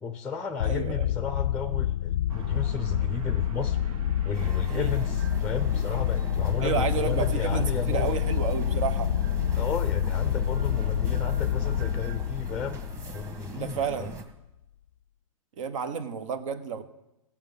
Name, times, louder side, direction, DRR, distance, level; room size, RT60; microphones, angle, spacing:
voice 1, 0.0-3.8 4.2-8.2 9.5-12.8 13.1-14.1, left 5 dB, 5° left, 10 dB, 0.6 m, -34 dB
sound 1, 0.6-13.9, left 11 dB, 60° left, 0.4 m, -28 dB
voice 2, 0.6-1.1 4.7-4.9 6.6-9.1 13.5-14.2 15.6-16.8, right 6 dB, 60° right, 11 dB, 1.3 m, -31 dB
sound 2, 2.3-12.0, right 4 dB, 80° right, 1.2 m, -41 dB
sound 3, 4.3-14.2, right 4 dB, 15° right, 1.7 m, -41 dB
16.5 x 7.2 x 5.4 m, 0.92 s
hypercardioid pair, 130°, 18 cm